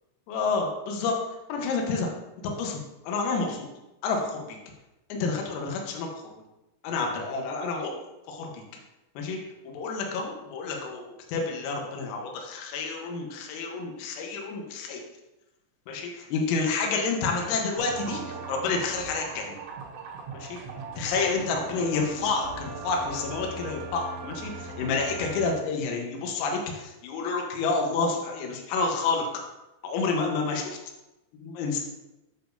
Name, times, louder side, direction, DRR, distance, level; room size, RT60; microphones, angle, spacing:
voice 1, 0.3-1.2 1.5-2.1 2.4-2.8 3.0-3.7 4.0-4.6 5.1-6.3 6.8-7.9 8.3-8.6 9.2-9.4 9.6-15.0 15.9-19.6 20.3-20.6 21.0-29.3 29.8-30.8 31.4-31.8, left 4 dB, 85° left, 1 dB, 3.8 m, -29 dB
sound 1, 17.8-25.5, right 4 dB, 70° right, 3.2 m, -39 dB
9.8 x 6.9 x 2.6 m, 0.96 s
omnidirectional pair, 5.9 m